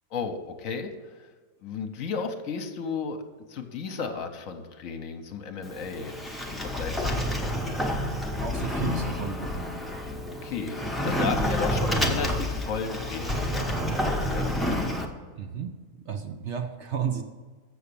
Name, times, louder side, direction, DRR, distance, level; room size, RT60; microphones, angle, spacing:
voice 1, 0.1-1.3 1.6-3.2 3.5-8.0 10.4-14.5, left 5 dB, 65° left, 7 dB, 1.2 m, -34 dB
Sliding door, 5.6-15.1, left 1 dB, ahead, 0.6 m, -29 dB
voice 2, 8.4-9.8 15.4-15.7 16.1-17.2, right 7 dB, 60° right, 5 dB, 0.8 m, -32 dB
7.0 x 6.7 x 6.8 m, 1.4 s
omnidirectional pair, 1.6 m